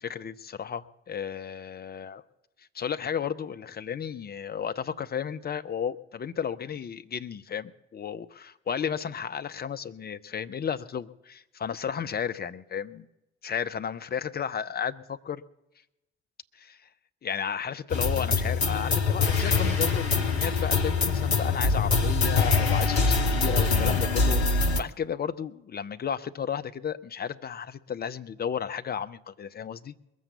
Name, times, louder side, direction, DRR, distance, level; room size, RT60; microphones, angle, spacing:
voice 1, 0.0-2.2 2.7-13.1 13.4-15.4 16.5-16.8 17.2-29.9, left 7 dB, 30° left, 10 dB, 0.8 m, -33 dB
sound 1, 17.9-24.8, left 4 dB, 85° left, 0.8 m, -24 dB
21.5 x 7.3 x 6.9 m, 0.90 s
figure-of-eight pair, 45°, 31 cm